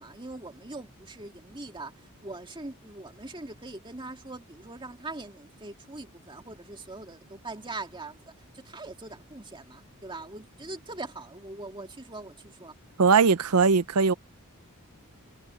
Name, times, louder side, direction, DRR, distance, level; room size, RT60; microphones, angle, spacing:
voice 1, 0.0-1.9 2.2-12.7, right 2 dB, 20° right, 2.2 m, -42 dB
voice 2, 13.0-14.1, right 5 dB, 80° right, 0.7 m, -20 dB
head